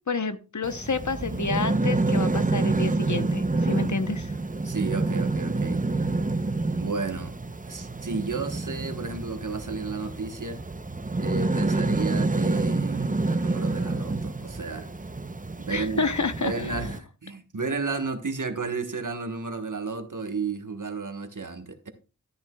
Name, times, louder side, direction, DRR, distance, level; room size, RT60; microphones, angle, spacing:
voice 1, 0.1-4.3 15.7-16.9, left 4 dB, 65° left, 0.9 m, -29 dB
sound 1, 0.6-17.0, right 3 dB, 25° right, 0.7 m, -28 dB
voice 2, 4.6-5.8 6.7-7.3 7.7-10.6 11.2-14.9 15.6-16.1 16.4-21.9, right 4 dB, 70° right, 1.3 m, -32 dB
13.0 x 9.5 x 2.3 m
wide cardioid pair, 45°, 32 cm